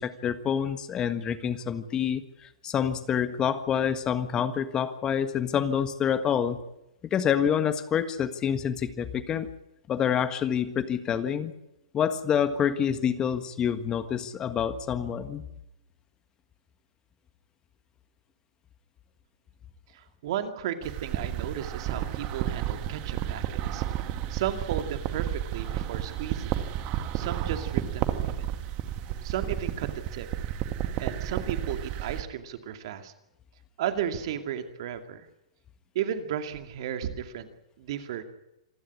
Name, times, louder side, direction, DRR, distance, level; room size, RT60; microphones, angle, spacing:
voice 1, 0.0-6.6 7.0-9.5 9.9-11.5 11.9-15.4, left 8 dB, 25° left, 11 dB, 1.6 m, -27 dB
voice 2, 20.2-23.8 24.3-26.6 27.1-28.2 29.2-30.3 31.0-33.1 33.8-35.3 35.9-37.5 37.8-38.2, right 9 dB, 60° right, 7 dB, 2.4 m, -34 dB
sound 1, 20.8-32.2, right 11 dB, 40° right, 2.1 m, -32 dB
27.0 x 12.5 x 9.8 m, 0.89 s
hypercardioid pair, 115°, 3 cm